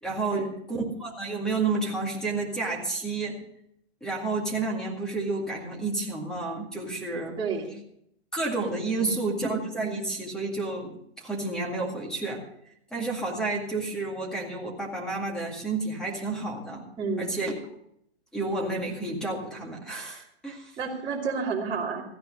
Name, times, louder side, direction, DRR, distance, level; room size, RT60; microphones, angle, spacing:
voice 1, 0.0-3.4 4.0-7.4 8.3-12.4 12.9-16.8 17.2-17.5 18.3-20.7, right 3 dB, ahead, -1 dB, 2.1 m, -30 dB
voice 2, 7.4-7.8 9.0-9.3 17.0-17.4 20.8-22.0, right 5 dB, 15° right, -4 dB, 2.8 m, -30 dB
15.5 x 10.5 x 5.4 m, 0.74 s
hypercardioid pair, 160°, 32 cm